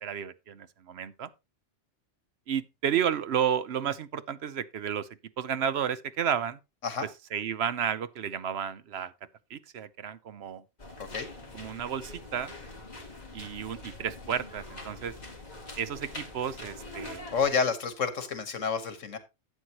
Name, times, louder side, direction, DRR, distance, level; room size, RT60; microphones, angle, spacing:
voice 1, 0.0-1.3 2.5-5.1 5.4-6.6 7.3-9.1 9.5-10.6 11.5-12.5 13.3-15.1 15.8-17.2, right 8 dB, 60° right, 0.9 m, -32 dB
sound 1, 10.8-17.5, left 2 dB, 35° left, 2.7 m, -44 dB
voice 2, 17.3-19.2, left 5 dB, 85° left, 1.7 m, -29 dB
12.0 x 8.2 x 2.9 m
omnidirectional pair, 1.3 m